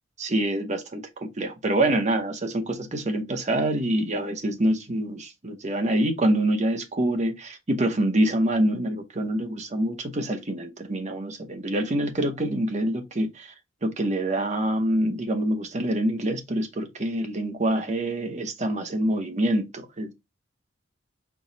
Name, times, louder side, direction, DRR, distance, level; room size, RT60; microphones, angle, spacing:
voice 1, 0.2-13.5 13.8-20.1, right 1 dB, 35° right, 0.9 m, -26 dB
4.6 x 2.3 x 3.9 m
head